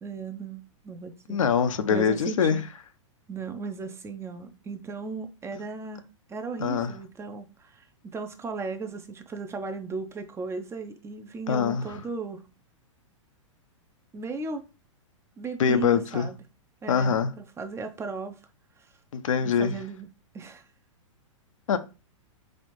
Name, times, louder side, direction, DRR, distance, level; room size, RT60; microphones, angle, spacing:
voice 1, 0.0-1.4 1.9-2.6 3.3-6.0 6.3-12.4 14.1-14.6 15.4-16.4 16.8-18.4 18.8-18.9 19.4-20.1 20.3-20.6, right 4 dB, 15° right, 0.5 m, -36 dB
voice 2, 1.3-2.6 6.6-6.9 11.5-12.0 15.6-16.3 16.9-17.3 19.1-19.8 21.7-21.8, left 7 dB, 80° left, 0.6 m, -24 dB
4.2 x 2.5 x 3.1 m
hypercardioid pair, 115°, 17 cm